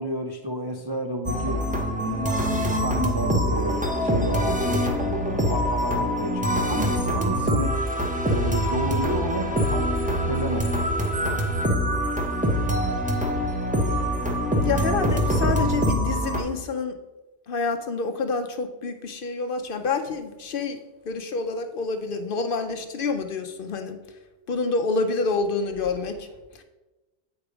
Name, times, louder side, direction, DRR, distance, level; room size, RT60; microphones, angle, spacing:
voice 1, 0.0-1.6 2.0-7.8 8.2-10.8, right 1 dB, 40° right, 3 dB, 0.3 m, -31 dB
sound 1, 1.3-16.4, equal, 5° right, 0.9 m, -24 dB
voice 2, 14.6-17.0 17.5-20.8 21.0-24.0 24.5-26.3 26.6-26.7, left 4 dB, 55° left, 7 dB, 0.7 m, -27 dB
8.2 x 4.9 x 4.9 m, 1.1 s
omnidirectional pair, 1.2 m